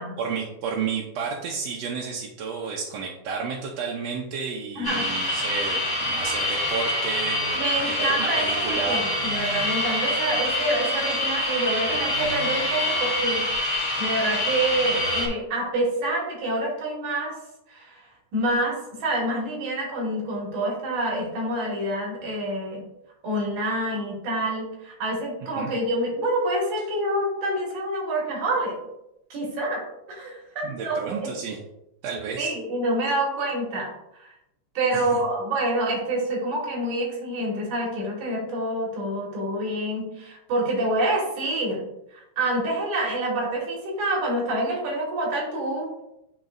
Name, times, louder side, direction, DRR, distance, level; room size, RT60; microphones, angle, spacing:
voice 1, 0.2-9.0 25.6-25.7 30.6-31.6 32.0-32.5 34.9-35.2, right 5 dB, 70° right, -2 dB, 1.7 m, -32 dB
sound 1, 4.8-15.3, left 1 dB, 30° left, 0.4 m, -26 dB
voice 2, 4.8-5.1 7.5-13.5 14.0-17.4 17.7-18.0 18.3-22.8 23.2-28.8 29.3-31.3 32.4-33.9 34.2-34.3 34.7-46.0, right 1 dB, 90° right, -3 dB, 3.4 m, -27 dB
10.5 x 3.9 x 2.6 m, 0.85 s
omnidirectional pair, 3.4 m